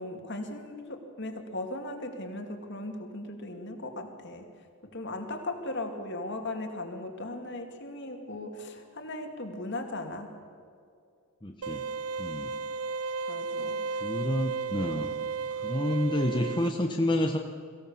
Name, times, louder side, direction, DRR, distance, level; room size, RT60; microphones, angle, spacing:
voice 1, 0.0-4.5 4.8-10.3 13.3-14.0, left 2 dB, 55° left, 4 dB, 2.4 m, -38 dB
voice 2, 11.4-11.8 12.2-12.5 14.0-15.1 15.5-17.4, left 1 dB, 20° left, 2 dB, 1.0 m, -29 dB
sound 1, 11.6-16.7, right 5 dB, 80° right, 0.6 m, -34 dB
23.0 x 16.5 x 7.2 m, 2.4 s
head